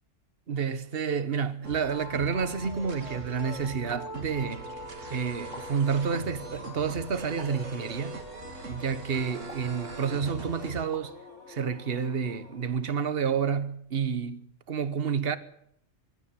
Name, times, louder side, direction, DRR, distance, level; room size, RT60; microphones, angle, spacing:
voice 1, 0.5-4.7 5.1-8.2 8.7-11.2 11.5-15.4, right 6 dB, 50° right, 1.4 m, -29 dB
sound 1, 1.6-10.8, right 2 dB, 75° right, 2.5 m, -41 dB
sound 2, 1.8-2.1 3.9-4.3 5.5-5.9 7.4-7.8 9.5-9.9 10.9-11.2, left 1 dB, 35° left, 3.0 m, -48 dB
sound 3, 3.9-13.2, left 2 dB, 65° left, 3.5 m, -48 dB
23.5 x 13.5 x 9.9 m
omnidirectional pair, 1.3 m